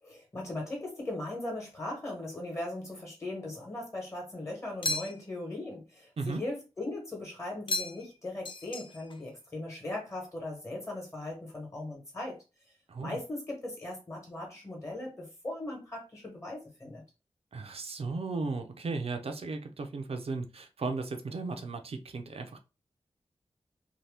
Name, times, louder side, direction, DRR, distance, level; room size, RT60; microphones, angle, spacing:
voice 1, 0.0-12.4 13.0-17.0, left 2 dB, 25° left, 0 dB, 1.2 m, -39 dB
sound 1, 4.8-5.4 7.7-8.2 8.4-9.2, left 2 dB, 45° left, 0.5 m, -35 dB
voice 2, 17.5-22.6, right 3 dB, 60° right, 6 dB, 0.5 m, -35 dB
2.8 x 2.1 x 3.3 m, 0.29 s
wide cardioid pair, 115°, 11 cm